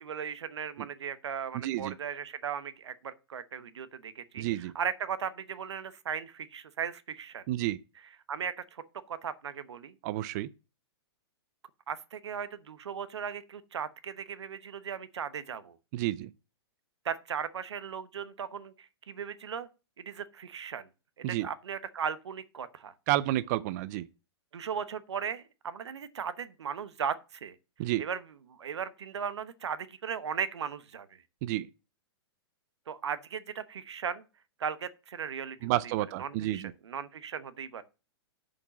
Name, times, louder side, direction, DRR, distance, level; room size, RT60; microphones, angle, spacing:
voice 1, 0.0-7.4 8.3-9.9 11.9-15.8 17.0-19.7 20.0-20.9 21.2-22.9 24.5-27.5 28.0-31.1 32.9-34.2 34.6-35.7 36.2-37.8, right 7 dB, 90° right, 1.0 m, -37 dB
voice 2, 1.5-1.9 4.4-4.7 7.5-7.8 10.0-10.5 15.9-16.3 21.2-21.5 23.1-24.1 27.8-28.0 31.4-31.7 35.6-36.7, right 16 dB, 40° right, 0.4 m, -30 dB
7.0 x 5.2 x 7.1 m
hypercardioid pair, 140°, 14 cm